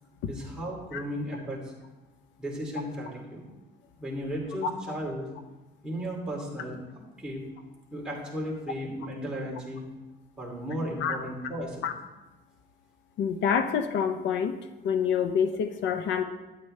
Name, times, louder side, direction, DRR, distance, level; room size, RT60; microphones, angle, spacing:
voice 1, 0.3-1.7 2.4-3.5 4.0-5.3 5.8-6.8 7.2-7.4 7.9-9.8 10.4-11.8, equal, 5° right, -5 dB, 2.6 m, -35 dB
voice 2, 13.2-14.5 14.8-16.2, left 7 dB, 80° left, 8 dB, 0.8 m, -27 dB
12.5 x 9.2 x 3.3 m, 1.1 s
cardioid pair, 160°, 19 cm